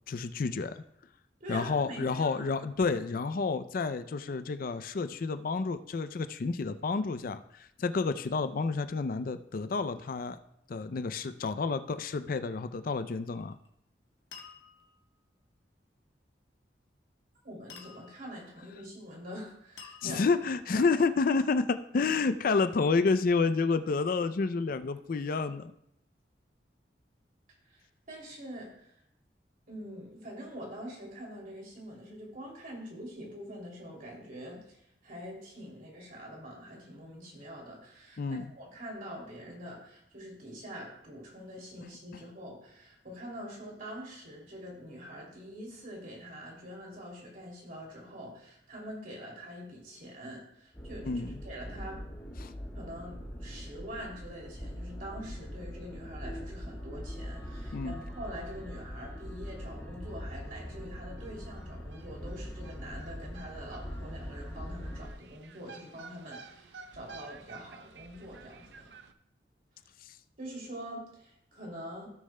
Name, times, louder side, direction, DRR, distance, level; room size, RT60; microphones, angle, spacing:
voice 1, 0.1-0.8 1.5-10.4 10.7-13.6 20.0-25.7 38.2-38.4 51.0-51.4 52.4-52.5 57.7-57.9, left 4 dB, 50° left, 11 dB, 0.4 m, -30 dB
voice 2, 1.4-2.5 17.4-20.2 20.7-20.9 27.7-28.9 29.7-52.0 52.7-68.9 70.4-72.1, equal, 50° right, -2 dB, 2.8 m, -45 dB
sound 1, 13.2-13.7 14.3-15.0 17.7-18.4 19.8-20.6, left 6 dB, 85° left, 1.3 m, -51 dB
sound 2, 50.7-65.1, equal, 15° left, 1.7 m, -42 dB
sound 3, 60.5-60.6 60.8-60.9 61.2-69.1, right 5 dB, 70° right, 0.6 m, -52 dB
16.5 x 6.4 x 2.2 m, 0.75 s
head